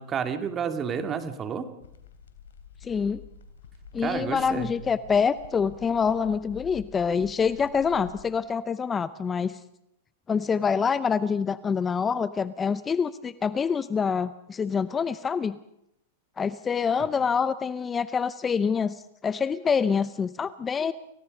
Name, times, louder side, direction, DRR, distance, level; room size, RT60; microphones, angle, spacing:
voice 1, 0.0-1.7 4.0-4.7, right 7 dB, 25° right, 7 dB, 2.4 m, -30 dB
sound 1, 1.8-8.3, left 6 dB, 80° left, 3.5 m, -47 dB
voice 2, 2.8-3.2 3.9-9.6 10.3-15.6 16.4-20.9, left 6 dB, 20° left, 15 dB, 0.6 m, -26 dB
28.5 x 17.0 x 5.4 m, 0.81 s
hypercardioid pair, 120°, 0 cm